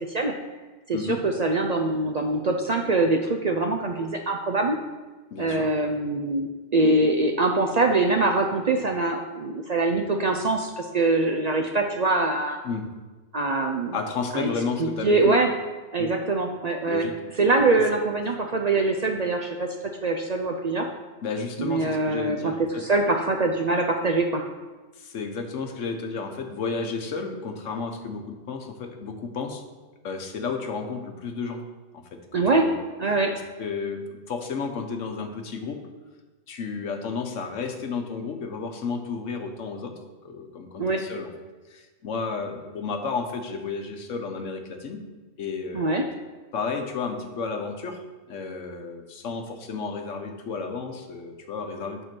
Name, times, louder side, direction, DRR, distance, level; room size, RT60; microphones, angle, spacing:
voice 1, 0.9-4.8 5.4-12.6 13.3-14.0 14.3-14.5 14.8-15.5 15.9-17.1 17.4-19.7 20.0-20.9 21.6-22.5 22.8-24.4 32.3-32.7 33.0-33.3 40.8-41.0 45.7-46.0, right 2 dB, 50° right, 3 dB, 0.5 m, -23 dB
voice 2, 5.3-5.7 12.6-12.9 13.9-15.3 16.0-16.1 16.8-17.2 17.7-17.9 21.2-22.9 25.0-29.6 30.0-31.6 31.9-32.8 33.3-35.8 36.5-40.0 40.2-41.3 41.7-45.0 45.4-46.0 46.5-48.0 48.3-52.0, left 4 dB, 90° left, 5 dB, 1.3 m, -32 dB
9.1 x 3.8 x 5.9 m, 1.2 s
omnidirectional pair, 1.2 m